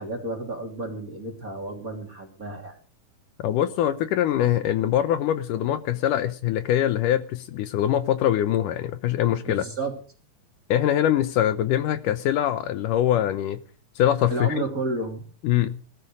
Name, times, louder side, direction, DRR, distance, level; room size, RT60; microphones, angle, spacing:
voice 1, 0.0-2.7 9.4-9.9 14.3-15.3, right 2 dB, 25° right, 2 dB, 3.2 m, -31 dB
voice 2, 3.4-9.6 10.7-13.6 14.0-14.6 15.4-15.8, left 11 dB, 75° left, 12 dB, 2.3 m, -23 dB
19.0 x 12.5 x 4.9 m, 0.39 s
omnidirectional pair, 3.9 m